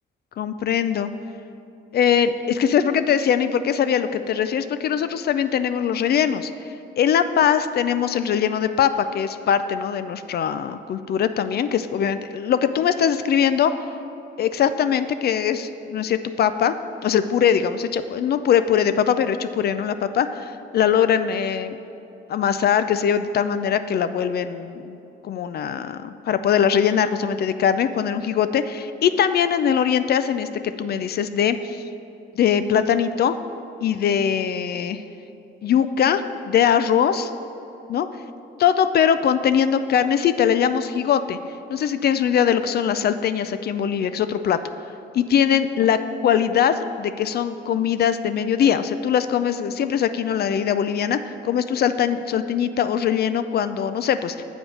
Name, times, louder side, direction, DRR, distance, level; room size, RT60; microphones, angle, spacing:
voice 1, 0.4-1.1 1.9-6.5 7.0-13.7 14.4-16.7 17.0-21.8 22.3-25.0 25.2-30.5 30.8-31.8 32.3-33.4 33.8-35.0 35.6-37.3 37.9-38.1 38.6-41.4 41.7-44.6 45.1-54.4, left 8 dB, 55° left, 11 dB, 0.4 m, -21 dB
7.1 x 5.1 x 6.3 m, 2.8 s
cardioid pair, 90°, 20 cm